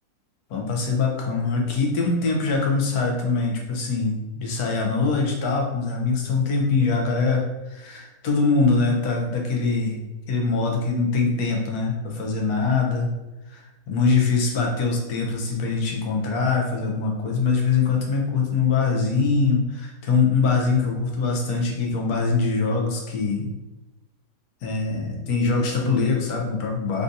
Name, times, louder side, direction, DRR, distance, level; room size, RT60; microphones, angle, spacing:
voice 1, 0.5-10.0 10.3-13.1 13.5-23.5 24.6-27.0, left 4 dB, 75° left, 0 dB, 1.1 m, -23 dB
3.5 x 2.6 x 2.6 m, 1.0 s
omnidirectional pair, 1.7 m